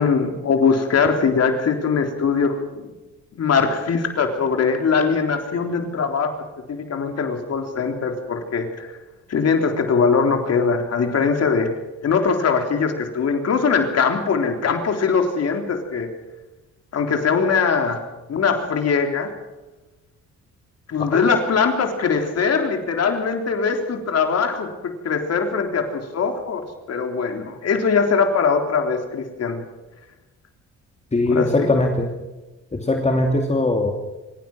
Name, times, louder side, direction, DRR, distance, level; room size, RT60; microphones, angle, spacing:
voice 1, 0.0-2.9 3.4-6.3 6.7-9.0 9.3-11.7 12.0-16.1 16.9-18.0 18.3-19.3 20.9-29.6 31.3-31.7, left 5 dB, 55° left, 5 dB, 3.6 m, -21 dB
voice 2, 31.1-32.1 32.7-33.9, left 2 dB, 20° left, 3 dB, 2.7 m, -20 dB
27.0 x 16.0 x 6.1 m, 1.1 s
cardioid pair, 90°, 30 cm